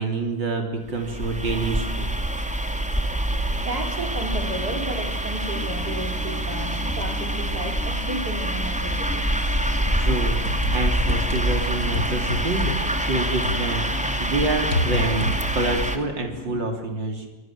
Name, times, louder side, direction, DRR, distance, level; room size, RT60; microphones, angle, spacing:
voice 1, 0.0-2.1 9.8-15.3 15.5-17.3, right 2 dB, 85° right, 3 dB, 4.2 m, -27 dB
sound 1, 0.9-16.0, right 1 dB, 5° right, 2.3 m, -26 dB
voice 2, 3.6-9.3, right 1 dB, 60° right, 4 dB, 4.4 m, -33 dB
sound 2, 5.5-16.6, left 3 dB, 40° left, 3.5 m, -37 dB
sound 3, 10.4-14.0 14.2-15.9, left 1 dB, 75° left, 3.5 m, -29 dB
28.5 x 23.5 x 7.6 m, 1.2 s
omnidirectional pair, 1.9 m